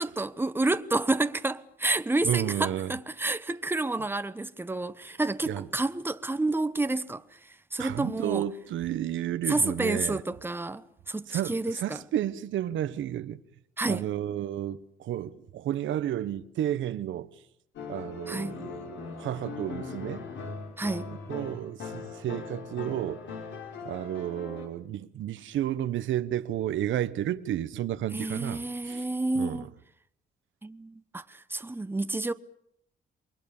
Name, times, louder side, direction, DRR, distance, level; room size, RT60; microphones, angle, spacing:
voice 1, 0.0-7.2 7.7-8.4 9.5-12.0 13.8-14.1 18.3-18.6 20.8-21.1 28.1-29.7 30.6-32.3, right 2 dB, 10° right, 1.1 m, -29 dB
voice 2, 2.2-2.9 5.4-5.7 7.8-10.2 11.3-13.4 13.9-17.3 17.9-20.2 21.3-23.2 23.8-29.0 29.3-29.7, right 11 dB, 75° right, 1.1 m, -32 dB
sound 1, 17.8-24.7, left 5 dB, 70° left, 5.2 m, -40 dB
28.5 x 22.0 x 7.1 m
cardioid pair, 90°, 20 cm